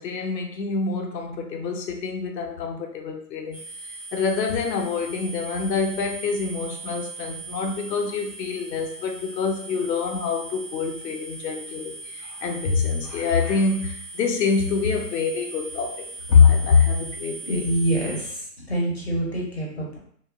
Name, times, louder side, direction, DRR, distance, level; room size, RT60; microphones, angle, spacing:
voice 1, 0.0-3.6 3.9-17.7, left 5 dB, 80° left, 3 dB, 0.6 m, -25 dB
sound 1, 3.5-18.3, right 2 dB, ahead, 0.4 m, -39 dB
voice 2, 17.5-20.0, right 1 dB, 40° left, -2 dB, 0.6 m, -26 dB
2.9 x 2.0 x 2.3 m, 0.62 s
hypercardioid pair, 170°, 50 cm